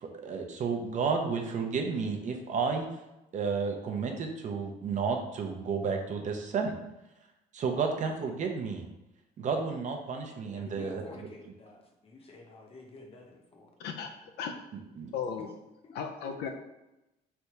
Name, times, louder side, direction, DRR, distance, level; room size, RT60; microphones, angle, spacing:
voice 1, 0.0-2.9 3.3-6.7 7.5-8.9 9.4-11.0 14.7-15.1, right 5 dB, 45° right, 3 dB, 0.7 m, -32 dB
voice 2, 10.4-13.7 15.8-16.0, left 3 dB, 35° left, 1 dB, 0.9 m, -50 dB
voice 3, 13.8-14.6 15.1-15.5 15.9-16.5, left 6 dB, 75° left, 4 dB, 0.5 m, -36 dB
3.4 x 2.7 x 4.5 m, 0.94 s
cardioid pair, 110°, 17 cm